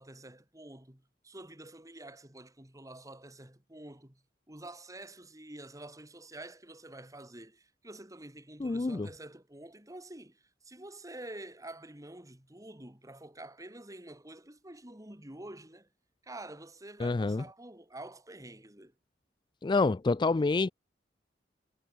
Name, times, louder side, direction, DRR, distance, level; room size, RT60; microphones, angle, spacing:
voice 1, 0.0-4.2 4.5-15.9 16.2-18.9, right 1 dB, 20° right, 3.1 m, -48 dB
voice 2, 8.6-9.1 17.0-17.4 19.6-20.7, left 3 dB, 25° left, 0.4 m, -27 dB
head